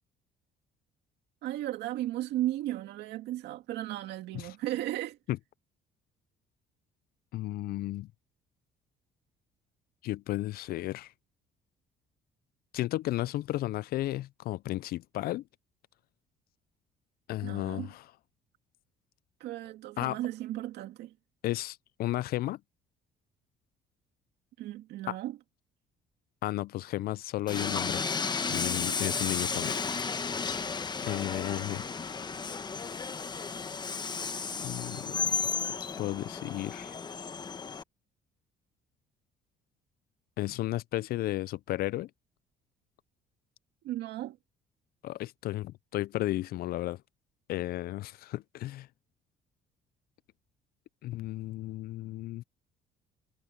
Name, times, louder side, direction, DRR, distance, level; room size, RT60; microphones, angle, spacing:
voice 1, 1.4-5.2 17.4-17.9 19.4-21.1 24.6-25.4 43.8-44.4, right 14 dB, 80° right, 2.3 m, -35 dB
voice 2, 7.3-8.1 10.0-11.1 12.7-15.4 17.3-18.0 20.0-20.2 21.4-22.6 25.1-25.2 26.4-28.0 28.5-29.8 31.0-32.0 34.6-35.4 36.0-37.0 40.4-42.1 45.0-47.0 47.5-48.9 51.0-52.4, left 16 dB, 65° left, 0.4 m, -34 dB
Train, 27.5-37.8, left 5 dB, 25° left, 1.1 m, -33 dB
cardioid pair, 110°, 17 cm